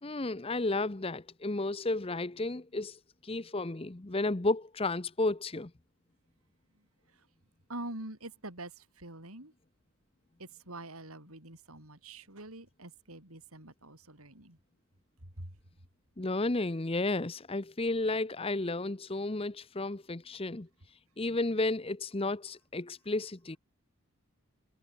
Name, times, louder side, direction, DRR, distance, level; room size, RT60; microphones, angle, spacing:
voice 1, 0.0-5.7 16.2-20.7 21.2-23.6, left 2 dB, 25° left, 0.8 m, -32 dB
voice 2, 7.7-9.5 10.4-14.6 15.4-15.5, right 2 dB, 90° right, 6.8 m, -45 dB
head